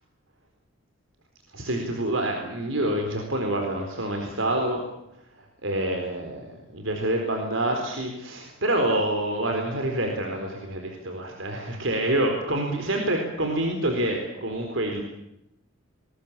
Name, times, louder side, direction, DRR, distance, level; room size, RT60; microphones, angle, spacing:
voice 1, 1.5-4.8 5.6-15.0, right 1 dB, 75° right, 3 dB, 4.2 m, -27 dB
22.0 x 20.5 x 8.7 m, 0.84 s
head